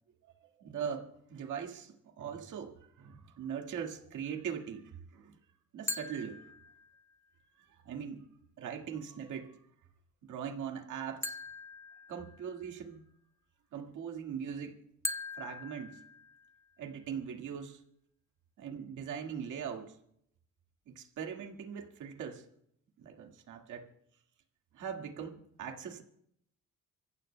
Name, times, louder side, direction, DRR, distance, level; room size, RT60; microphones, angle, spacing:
voice 1, 0.6-5.4 5.7-6.5 7.6-8.3 8.6-9.6 10.3-11.4 12.1-13.0 13.7-14.8 15.4-16.0 16.8-17.8 18.6-20.0 20.9-22.4 23.0-23.9 24.7-26.0, right 7 dB, 75° right, 3 dB, 2.0 m, -41 dB
sound 1, 5.9-7.2 11.2-12.8 15.0-16.7, left 2 dB, 10° left, 1.0 m, -41 dB
26.5 x 15.0 x 2.2 m, 0.72 s
cardioid pair, 90°, 30 cm